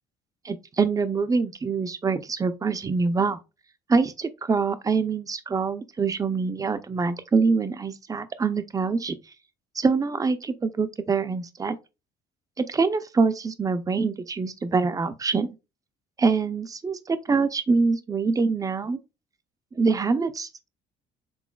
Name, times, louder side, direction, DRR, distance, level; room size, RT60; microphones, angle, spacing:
voice 1, 0.4-3.4 3.9-9.2 9.8-11.8 12.7-15.5 16.2-19.0 19.8-20.7, right 4 dB, 20° right, 0.5 m, -25 dB
6.2 x 3.6 x 2.3 m
cardioid pair, 110°, 17 cm